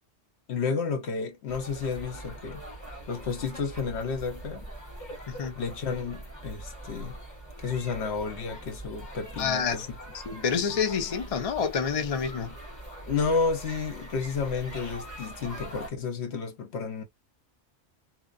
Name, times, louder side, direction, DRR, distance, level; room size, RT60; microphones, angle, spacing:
voice 1, 0.5-2.6 3.1-4.7 5.6-7.2 7.6-9.8 10.3-10.4 13.1-17.0, left 5 dB, 65° left, 1.0 m, -31 dB
sound 1, 1.5-15.9, right 1 dB, 15° left, 1.5 m, -42 dB
voice 2, 5.3-5.6 9.4-9.9 10.1-12.5, left 6 dB, 45° left, 0.5 m, -28 dB
2.8 x 2.1 x 2.4 m
omnidirectional pair, 1.2 m